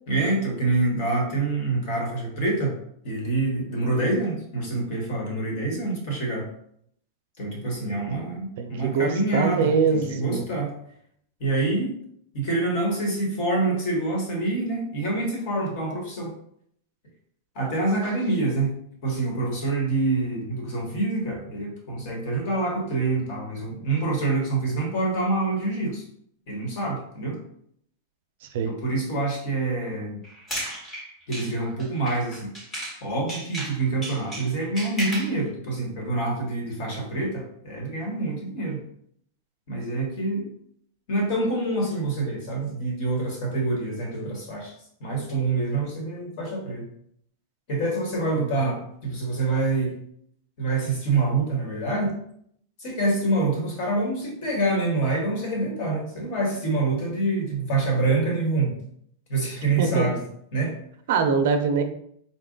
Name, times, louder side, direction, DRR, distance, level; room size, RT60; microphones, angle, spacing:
voice 1, 0.1-2.7 3.0-6.5 7.4-10.7 11.4-11.9 12.3-16.3 17.5-18.7 19.0-26.0 26.5-27.4 28.6-30.2 31.3-32.5 33.0-38.8 39.7-40.5 41.1-44.7 45.0-46.9 47.7-49.9 50.6-52.1 52.8-58.8 59.3-60.2 60.5-60.8, right 2 dB, 45° left, 0 dB, 1.4 m, -26 dB
voice 2, 8.6-10.4 28.4-28.7 48.4-48.5 59.6-60.1 61.1-61.8, right 5 dB, 60° right, 6 dB, 0.5 m, -24 dB
sound 1, 30.2-33.0 33.3-35.4, right 1 dB, 15° left, 1.0 m, -34 dB
4.0 x 2.3 x 3.8 m, 0.67 s
supercardioid pair, 170°, 0 cm